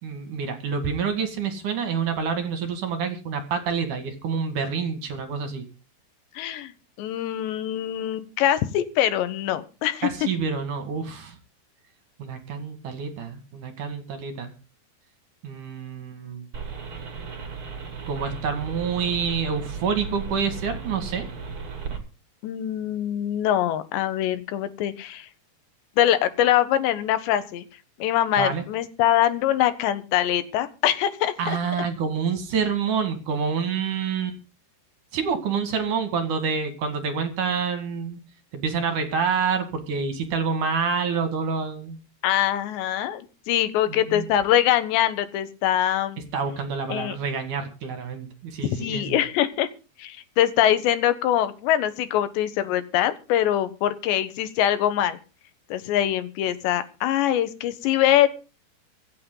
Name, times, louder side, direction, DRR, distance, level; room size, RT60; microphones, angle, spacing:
voice 1, 0.0-5.6 10.0-11.4 12.2-14.5 15.4-16.4 18.1-21.3 28.4-28.6 31.4-34.4 35.1-38.2 38.5-42.0 43.9-44.3 46.3-49.2, right 6 dB, 55° right, 7 dB, 3.2 m, -27 dB
voice 2, 6.4-6.7 7.0-10.1 22.4-25.3 26.0-27.6 28.0-31.6 42.2-46.2 46.9-47.2 48.8-49.7 50.0-55.2 55.7-58.3, left 11 dB, 90° left, 12 dB, 3.5 m, -23 dB
sound 1, 16.5-22.0, right 6 dB, 35° right, 2.9 m, -35 dB
25.0 x 8.6 x 3.9 m, 0.33 s
omnidirectional pair, 4.9 m